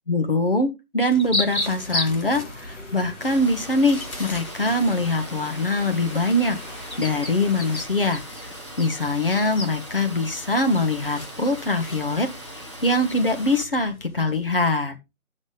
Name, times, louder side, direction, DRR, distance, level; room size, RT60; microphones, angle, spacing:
voice 1, 0.1-6.6 7.0-8.2 8.8-15.0, left 2 dB, 40° left, 5 dB, 1.5 m, -23 dB
sound 1, 1.1-14.6, left 1 dB, 70° left, 2.1 m, -36 dB
sound 2, 1.4-7.9, left 1 dB, 55° left, 2.7 m, -42 dB
Water, 3.2-13.6, right 1 dB, 20° left, 1.2 m, -40 dB
8.3 x 6.6 x 5.1 m, 0.23 s
figure-of-eight pair, 165°, 43 cm